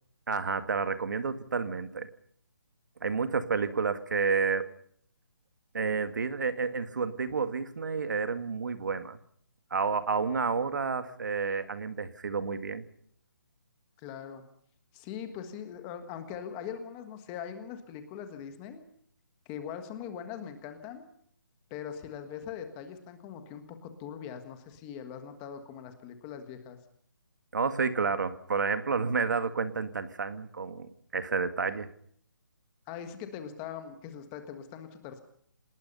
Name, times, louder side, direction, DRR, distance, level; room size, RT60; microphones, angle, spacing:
voice 1, 0.3-2.1 3.0-4.7 5.7-9.2 9.7-12.8 27.5-31.9, right 5 dB, 60° right, 11 dB, 1.9 m, -30 dB
voice 2, 14.0-14.4 14.9-18.8 19.4-21.0 21.7-26.8 32.9-35.2, left 8 dB, 10° left, 8 dB, 1.5 m, -41 dB
27.5 x 19.5 x 5.5 m, 0.64 s
hypercardioid pair, 175°, 11 cm